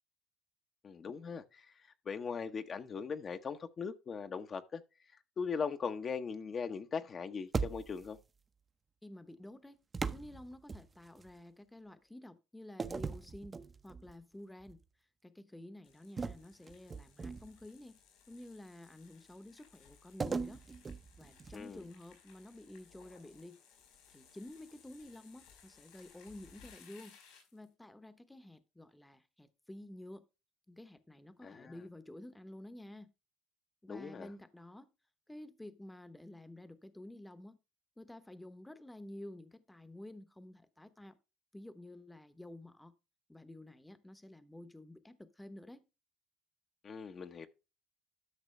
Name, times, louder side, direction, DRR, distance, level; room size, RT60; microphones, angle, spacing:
voice 1, 0.8-4.8 5.4-8.2 21.5-21.8 31.4-31.7 33.9-34.3 46.8-47.5, left 5 dB, 35° left, 0.9 m, -40 dB
sound 1, 7.5-8.2 9.9-11.3 12.8-14.1 14.6-14.8 16.2-17.7 20.2-21.8, right 5 dB, 25° right, 0.8 m, -39 dB
voice 2, 9.0-9.8 10.1-13.6 13.8-14.8 15.2-18.0 18.3-20.6 21.2-23.6 24.1-27.2 27.5-30.2 30.7-33.1 33.8-34.9 35.3-37.6 38.0-41.1 41.5-42.9 43.3-45.8, left 1 dB, 5° left, 1.0 m, -51 dB
sound 2, 15.8-27.7, left 7 dB, 85° left, 5.3 m, -62 dB
12.5 x 6.1 x 3.3 m
cardioid pair, 115°, 0 cm